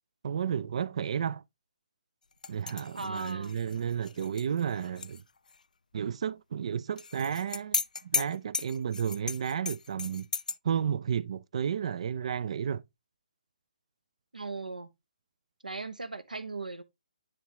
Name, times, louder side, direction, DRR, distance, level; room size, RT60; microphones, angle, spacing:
voice 1, 0.2-1.4 2.5-5.2 5.9-10.3 10.6-12.8, right 8 dB, 50° right, 0.3 m, -32 dB
sound 1, 2.4-5.2 5.5-5.6 7.0-10.6, left 5 dB, 75° left, 0.4 m, -35 dB
voice 2, 2.9-3.6 14.3-14.9 15.6-16.8, right 3 dB, 90° right, 0.9 m, -38 dB
9.9 x 3.7 x 2.9 m
figure-of-eight pair, 140°, 4 cm